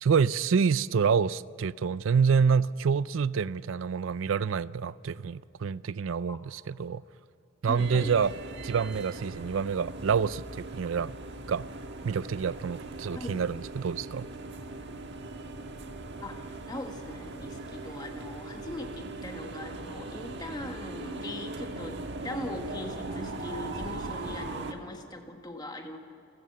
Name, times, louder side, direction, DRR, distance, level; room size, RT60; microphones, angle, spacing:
voice 1, 0.0-7.0 7.6-8.3 8.6-11.2 11.5-11.7 12.0-14.3, right 6 dB, 75° right, 0.4 m, -27 dB
voice 2, 7.7-8.2 13.1-13.4 14.7-14.8 16.2-26.0, left 1 dB, 20° left, 1.6 m, -41 dB
sound 1, 7.8-24.7, right 2 dB, 55° right, 1.4 m, -40 dB
30.0 x 15.0 x 6.8 m
head